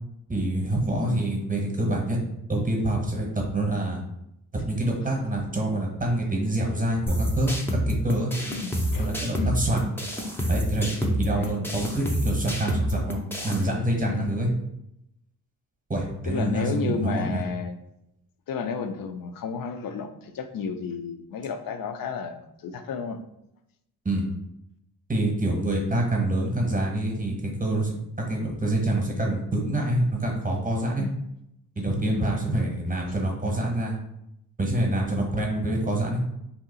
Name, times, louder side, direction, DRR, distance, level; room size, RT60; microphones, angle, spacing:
voice 1, 0.3-2.2 2.5-4.0 4.6-7.5 7.9-8.3 9.0-9.8 10.5-14.5 15.9-17.4 24.0-24.3 25.1-28.0 28.3-31.0 31.8-34.0 34.6-36.2, right 1 dB, 20° right, 0 dB, 0.9 m, -26 dB
sound 1, 7.1-13.6, equal, 5° left, 0.5 m, -28 dB
voice 2, 8.5-9.6 11.3-11.6 14.1-14.3 16.3-17.8 18.5-23.2 31.0-31.1 32.0-32.3, left 5 dB, 60° left, 7 dB, 0.5 m, -32 dB
2.8 x 2.3 x 3.8 m, 0.82 s
cardioid pair, 105°, 39 cm